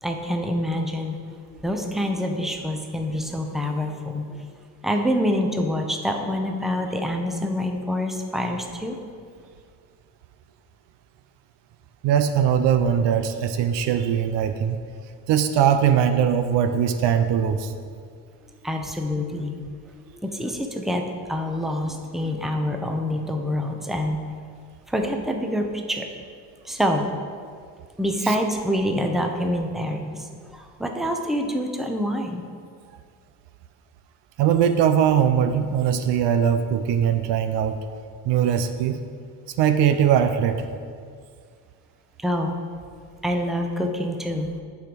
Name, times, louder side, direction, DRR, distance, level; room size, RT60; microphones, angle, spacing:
voice 1, 0.0-1.4 1.6-4.4 4.8-9.0 18.6-19.6 19.9-21.0 21.3-24.2 24.9-26.1 26.6-27.1 28.0-32.4 42.2-42.6 43.2-44.5, equal, ahead, 3 dB, 0.8 m, -26 dB
voice 2, 12.0-14.8 15.3-17.7 34.4-37.8 38.2-39.0 39.6-40.6, right 8 dB, 65° right, 9 dB, 0.6 m, -20 dB
7.5 x 4.8 x 5.3 m, 2.1 s
supercardioid pair, 75°, 45 cm